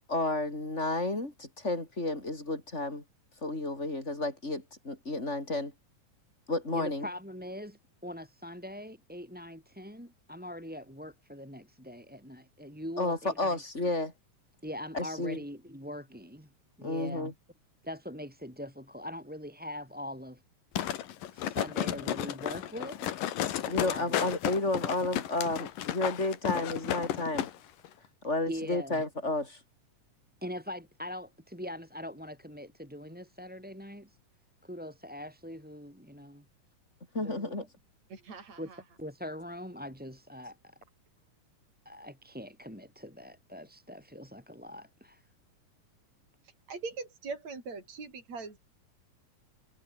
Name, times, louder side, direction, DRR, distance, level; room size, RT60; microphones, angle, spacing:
voice 1, 0.1-3.0 3.4-5.7 6.5-7.1 13.0-14.1 14.9-15.4 16.8-17.3 23.7-27.5 28.2-29.6 37.1-37.7, left 2 dB, 20° left, 6.6 m, -31 dB
voice 2, 6.7-13.6 14.6-16.5 16.8-17.3 17.8-20.4 21.3-23.1 23.9-24.1 28.5-29.0 30.4-34.2 34.6-36.4 37.2-37.6 38.6-38.7 39.0-40.8 41.8-45.3, equal, ahead, 6.6 m, -42 dB
sound 1, 20.8-27.5 27.8-27.9, left 11 dB, 85° left, 3.3 m, -33 dB
voice 3, 38.1-38.8 46.7-48.6, right 4 dB, 55° right, 7.0 m, -41 dB
omnidirectional pair, 3.8 m